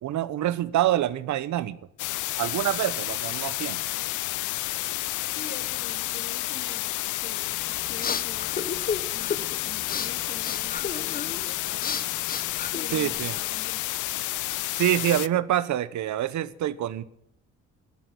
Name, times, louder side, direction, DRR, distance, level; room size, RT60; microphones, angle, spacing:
voice 1, 0.0-1.8 2.4-3.8 12.9-13.3 14.7-17.0, right 12 dB, 70° right, 0.8 m, -26 dB
sound 1, 2.0-15.3, left 18 dB, 80° left, 0.5 m, -30 dB
voice 2, 5.3-8.5 9.0-12.0 12.6-13.8, left 5 dB, 45° left, 3.0 m, -44 dB
sound 2, 7.5-13.4, left 6 dB, 30° left, 0.8 m, -34 dB
12.5 x 7.8 x 9.8 m
cardioid pair, 90°, 30 cm